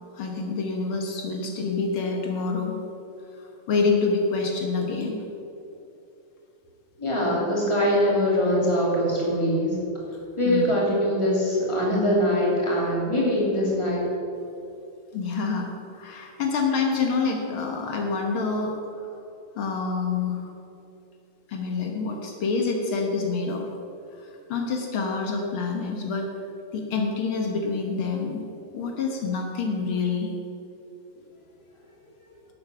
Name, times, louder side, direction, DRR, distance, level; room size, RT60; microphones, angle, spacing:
voice 1, 0.1-2.8 3.7-5.2 10.4-10.7 15.1-15.7 16.0-18.8 19.6-20.5 21.5-23.6 24.5-26.3 26.7-28.4 28.7-30.3, left 4 dB, 75° left, 1 dB, 2.0 m, -27 dB
voice 2, 7.0-9.8 10.4-14.0, equal, 15° left, -4 dB, 3.0 m, -23 dB
11.5 x 8.1 x 7.0 m, 2.8 s
omnidirectional pair, 2.3 m